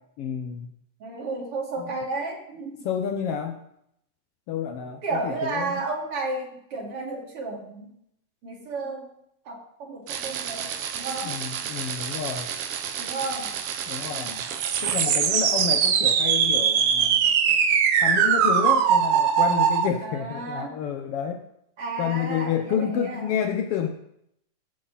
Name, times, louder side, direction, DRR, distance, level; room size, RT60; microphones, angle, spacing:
voice 1, 0.2-0.7 1.8-1.9 2.8-3.6 4.5-5.8 11.2-12.5 13.9-14.4 14.8-17.2 18.0-21.4 22.0-23.9, left 8 dB, 85° left, 5 dB, 1.3 m, -29 dB
voice 2, 1.0-2.9 5.0-7.9 8.4-9.1 9.4-11.4 13.0-13.5 20.0-20.8 21.8-23.4, right 3 dB, 45° right, -2 dB, 3.3 m, -32 dB
sound 1, 10.1-19.9, right 8 dB, 80° right, 1.3 m, -23 dB
20.5 x 7.7 x 4.1 m, 0.76 s
omnidirectional pair, 3.7 m